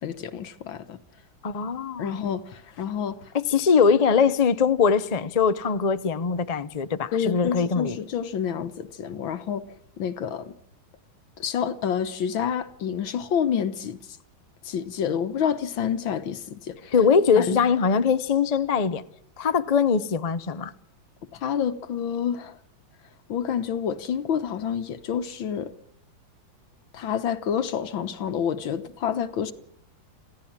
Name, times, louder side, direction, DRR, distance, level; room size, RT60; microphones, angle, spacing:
voice 1, 0.0-1.0 2.0-3.3 7.1-10.5 11.4-14.0 14.6-16.9 17.4-17.6 21.3-22.6 23.3-25.7 26.9-29.5, left 8 dB, 75° left, 2.0 m, -28 dB
voice 2, 1.4-2.2 3.3-8.0 16.9-19.0 19.4-20.7, left 6 dB, 55° left, 0.4 m, -22 dB
27.0 x 15.5 x 7.4 m
omnidirectional pair, 2.2 m